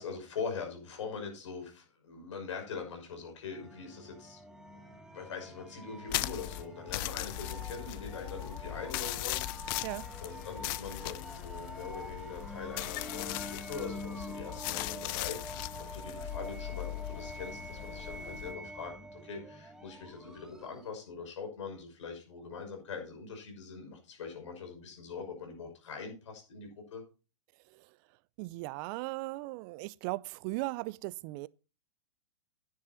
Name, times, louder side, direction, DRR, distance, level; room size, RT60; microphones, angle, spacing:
voice 1, 0.0-9.9 10.2-27.0, left 5 dB, 70° left, 5.8 m, -43 dB
sound 1, 3.5-21.0, equal, 5° right, 1.4 m, -46 dB
sound 2, 6.1-18.5, left 18 dB, 45° left, 0.6 m, -39 dB
voice 2, 28.4-31.5, right 21 dB, 40° right, 0.5 m, -38 dB
10.5 x 9.8 x 4.2 m
hypercardioid pair, 110°, 16 cm